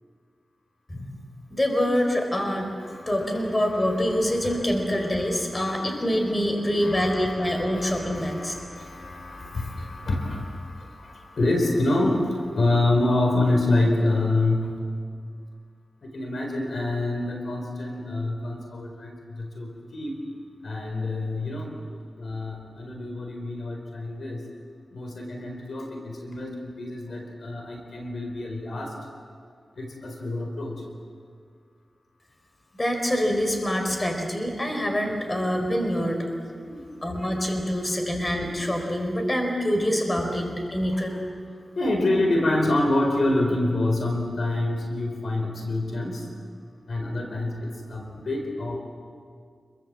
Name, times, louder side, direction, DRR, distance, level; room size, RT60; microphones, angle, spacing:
voice 1, 1.5-2.7 3.1-8.5 32.8-36.2 37.0-41.2, equal, 25° left, 3 dB, 4.5 m, -25 dB
voice 2, 2.8-14.8 16.1-20.2 20.6-21.7 22.2-24.4 24.9-28.9 29.8-30.8 36.7-36.8 41.8-46.2 46.9-48.8, left 2 dB, 70° left, 2 dB, 4.5 m, -27 dB
28.0 x 23.0 x 7.8 m, 2.1 s
wide cardioid pair, 75°, 0 cm